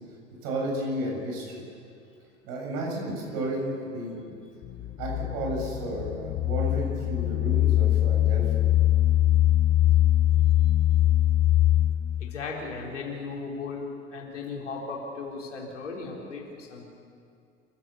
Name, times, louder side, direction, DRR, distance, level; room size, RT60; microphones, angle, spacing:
voice 1, 0.4-1.6 2.4-4.2 5.0-8.5, right 1 dB, 55° right, -1 dB, 7.8 m, -32 dB
sound 1, 4.6-12.5, left 13 dB, 35° left, 0.7 m, -22 dB
voice 2, 12.2-13.9 14.1-16.9, left 4 dB, 75° left, -2 dB, 4.3 m, -36 dB
27.5 x 16.0 x 7.0 m, 2.4 s
figure-of-eight pair, 75°, 37 cm